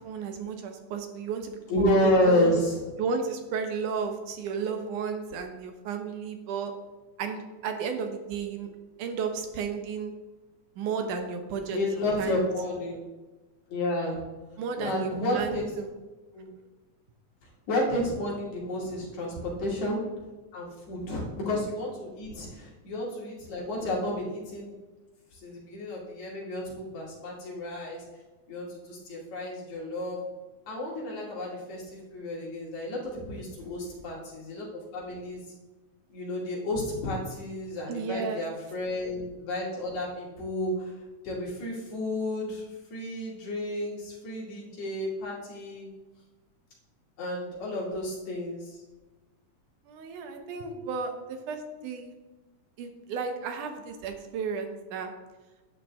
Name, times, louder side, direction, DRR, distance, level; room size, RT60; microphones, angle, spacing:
voice 1, 0.0-2.6 3.0-6.7 7.2-8.7 9.0-10.1 10.8-11.8 12.2-12.4 14.6-15.9 19.3-19.5 37.9-38.4 49.9-52.2 52.8-55.1, right 5 dB, 80° right, 5 dB, 2.5 m, -33 dB
voice 2, 1.7-2.8 11.7-13.0 13.7-14.2 14.8-15.6 16.3-16.5 17.7-20.0 20.5-24.7 25.4-28.0 28.5-30.2 30.7-34.7 34.9-35.4 36.1-40.9 41.2-42.6 42.9-45.9 47.2-48.8, left 1 dB, 65° left, -4 dB, 3.8 m, -31 dB
10.5 x 8.9 x 3.6 m, 1.2 s
omnidirectional pair, 3.5 m